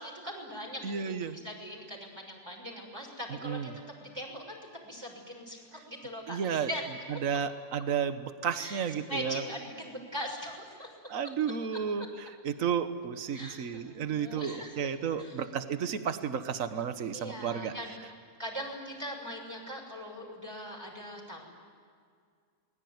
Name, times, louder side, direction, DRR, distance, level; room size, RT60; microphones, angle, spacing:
voice 1, 0.0-3.7 4.0-6.8 7.1-7.2 8.6-8.8 9.1-11.0 12.0-12.1 13.3-14.8 15.2-15.4 17.1-18.1 18.4-21.5, equal, 15° right, -2 dB, 6.3 m, -41 dB
voice 2, 0.8-1.4 3.4-3.7 6.3-6.7 7.2-9.4 11.1-17.7, right 7 dB, 55° right, 10 dB, 1.6 m, -32 dB
28.5 x 21.5 x 9.5 m, 2.1 s
omnidirectional pair, 1.7 m